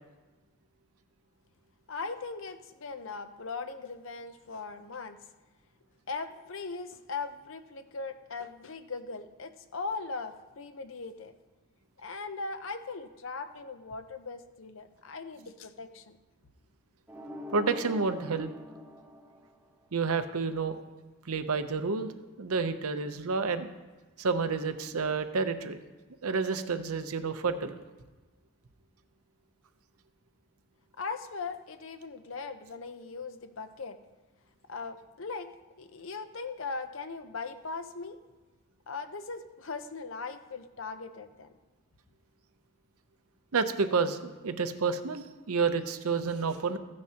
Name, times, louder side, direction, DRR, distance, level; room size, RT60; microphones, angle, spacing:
voice 1, 1.9-5.2 6.1-11.3 12.0-16.2 31.0-34.0 34.7-38.2 38.9-41.5, left 4 dB, 60° left, 9 dB, 0.7 m, -39 dB
sound 1, 17.1-20.1, left 2 dB, 10° right, 0.8 m, -44 dB
voice 2, 17.5-18.5 19.9-20.8 21.3-22.1 22.4-23.7 24.2-25.8 26.2-27.8 43.5-46.8, right 4 dB, 80° right, 9 dB, 0.7 m, -29 dB
15.0 x 9.4 x 2.9 m, 1.3 s
head